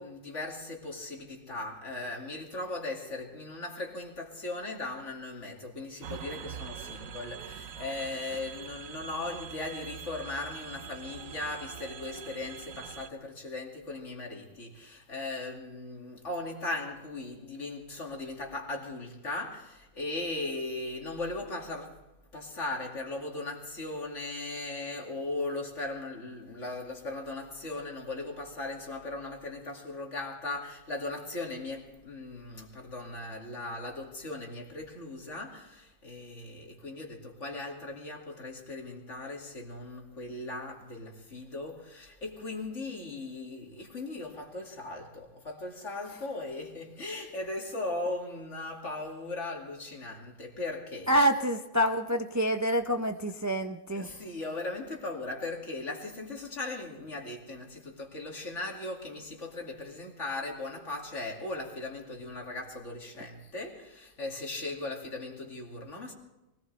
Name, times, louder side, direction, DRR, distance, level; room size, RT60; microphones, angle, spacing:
voice 1, 0.0-22.0 22.3-51.1 54.0-66.1, left 2 dB, 55° left, 2.8 m, -38 dB
sound 1, 6.0-13.1, right 8 dB, 70° right, 1.2 m, -44 dB
voice 2, 51.1-54.3, equal, 20° right, 0.5 m, -27 dB
23.5 x 18.0 x 3.3 m
omnidirectional pair, 1.5 m